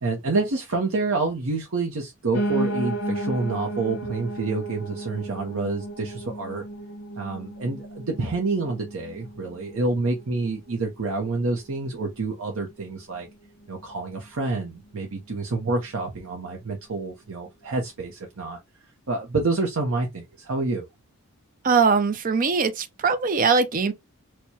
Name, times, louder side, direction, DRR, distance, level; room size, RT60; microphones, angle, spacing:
voice 1, 0.0-6.6 7.2-13.3 13.7-18.6 19.1-20.9, right 3 dB, 75° right, 0.7 m, -28 dB
Piano, 2.3-11.4 11.8-13.0 13.3-13.4 13.6-13.7 13.9-14.0 14.6-14.7, right 1 dB, 55° left, 1.0 m, -33 dB
voice 2, 21.6-23.9, right 5 dB, 40° right, 0.5 m, -21 dB
4.5 x 2.2 x 2.7 m
head